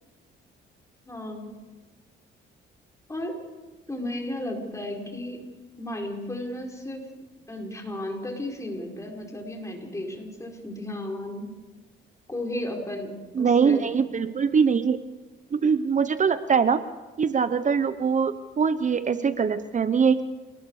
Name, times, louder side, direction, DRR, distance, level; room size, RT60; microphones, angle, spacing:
voice 1, 1.0-1.5 3.1-3.4 3.9-5.4 5.8-11.5 12.3-13.9, left 1 dB, 15° left, 1 dB, 5.1 m, -34 dB
voice 2, 13.4-15.0 15.5-16.8 17.2-20.2, right 6 dB, 40° right, 12 dB, 0.9 m, -22 dB
29.0 x 20.0 x 4.9 m, 1.2 s
cardioid pair, 90°, 20 cm